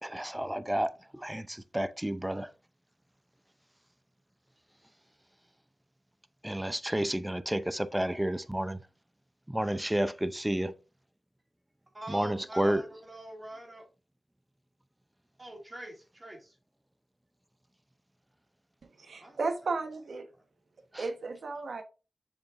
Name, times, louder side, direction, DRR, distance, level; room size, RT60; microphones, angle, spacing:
voice 1, 0.0-2.5 6.4-8.8 9.5-10.7 12.1-12.8 20.9-21.0, right 1 dB, 10° right, 0.5 m, -31 dB
voice 2, 11.9-13.9 15.4-16.6 19.2-19.4, right 1 dB, 25° right, 2.3 m, -44 dB
voice 3, 19.0-20.3 21.0-21.8, right 3 dB, 70° right, 1.1 m, -34 dB
6.9 x 6.4 x 2.5 m
wide cardioid pair, 95°, 0 cm